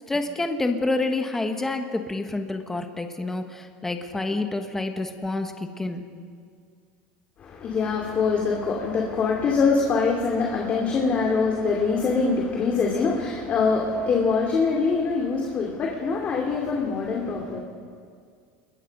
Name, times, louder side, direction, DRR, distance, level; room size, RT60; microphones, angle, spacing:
voice 1, 0.1-6.0, left 2 dB, 10° left, 6 dB, 1.3 m, -28 dB
voice 2, 7.4-17.6, left 4 dB, 30° left, 0 dB, 2.7 m, -24 dB
28.5 x 21.5 x 5.4 m, 2.1 s
supercardioid pair, 145°, 5 cm